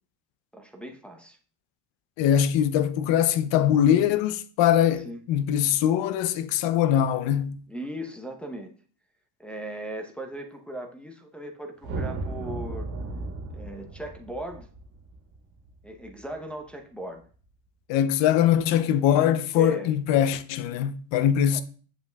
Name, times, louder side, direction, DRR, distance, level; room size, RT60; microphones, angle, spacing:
voice 1, 0.5-1.4 5.0-5.2 7.7-8.7 9.4-12.9 13.5-14.7 15.8-17.3 19.5-19.9 21.5-21.6, right 1 dB, ahead, 0.7 m, -37 dB
voice 2, 2.2-7.6 17.9-21.6, left 10 dB, 65° left, 0.7 m, -22 dB
sound 1, 11.8-16.2, right 2 dB, 90° right, 1.6 m, -35 dB
7.1 x 5.8 x 2.3 m
cardioid pair, 115°, 47 cm